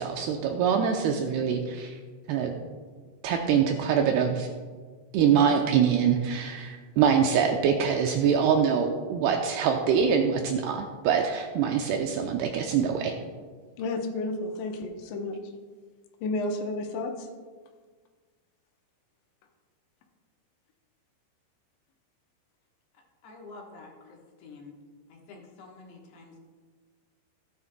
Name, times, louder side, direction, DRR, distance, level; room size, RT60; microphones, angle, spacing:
voice 1, 0.0-2.0 2.3-2.5 3.2-4.5 5.1-13.1, right 7 dB, 85° right, 3 dB, 2.3 m, -24 dB
voice 2, 13.8-15.4 16.2-17.3, left 2 dB, 85° left, 3 dB, 3.3 m, -31 dB
voice 3, 23.2-24.7 25.1-26.4, left 3 dB, 70° left, -1 dB, 3.0 m, -48 dB
16.0 x 9.5 x 2.2 m, 1.5 s
omnidirectional pair, 5.1 m